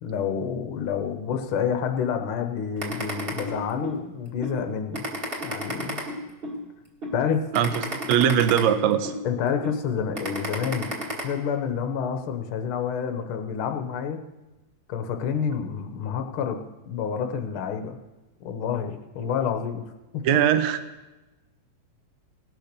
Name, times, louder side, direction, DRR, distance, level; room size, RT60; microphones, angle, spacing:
voice 1, 0.0-5.1 5.4-6.0 7.1-7.5 9.2-11.0 11.2-14.2 14.9-16.6 16.8-18.0 18.4-19.8 20.1-20.4, left 7 dB, 65° left, 6 dB, 1.3 m, -28 dB
sound 1, 2.8-4.0 4.4-4.6 4.9-6.6 7.0-7.2 7.5-9.2 9.6-9.8 10.1-11.2, equal, 20° right, 2.0 m, -31 dB
voice 2, 7.5-9.2 20.2-20.8, right 9 dB, 75° right, 11 dB, 1.9 m, -21 dB
18.5 x 6.3 x 6.7 m, 1.1 s
omnidirectional pair, 3.4 m